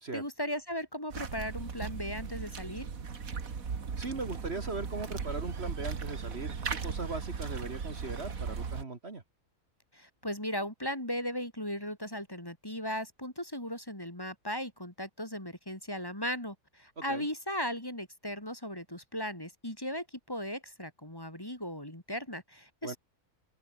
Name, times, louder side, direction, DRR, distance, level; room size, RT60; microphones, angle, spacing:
voice 1, 0.1-2.9 9.9-23.0, equal, 15° left, 3.8 m, -37 dB
sound 1, 1.1-8.8, right 5 dB, 75° right, 2.3 m, -37 dB
voice 2, 4.0-9.2 17.1-17.3 22.8-23.0, right 3 dB, 50° right, 2.4 m, -39 dB
open air
omnidirectional pair, 1.5 m